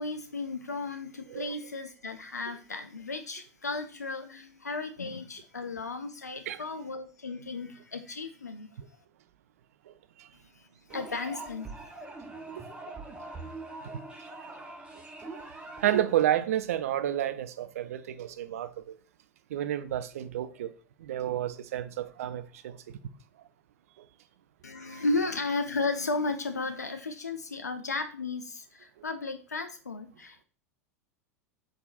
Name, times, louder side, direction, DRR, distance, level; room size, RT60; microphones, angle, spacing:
voice 1, 0.0-9.0 10.3-12.1 24.6-30.4, left 3 dB, 85° left, 0.3 m, -34 dB
sound 1, 10.9-16.2, right 2 dB, 10° right, 0.7 m, -43 dB
voice 2, 12.5-12.9 14.4-14.5 15.3-15.4 15.8-18.9 19.5-20.7 21.0-22.8 24.8-25.0, right 11 dB, 60° right, 0.4 m, -31 dB
4.0 x 3.6 x 2.5 m
figure-of-eight pair, 85°, 9 cm